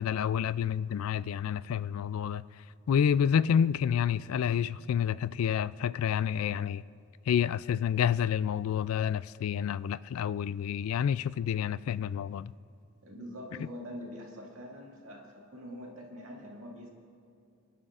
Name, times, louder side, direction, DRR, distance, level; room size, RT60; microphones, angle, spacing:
voice 1, 0.0-2.4 2.9-6.8 7.3-12.5, left 8 dB, 75° left, 0.3 m, -29 dB
voice 2, 13.0-16.9, equal, 70° right, 2.1 m, -44 dB
29.0 x 11.5 x 2.5 m
head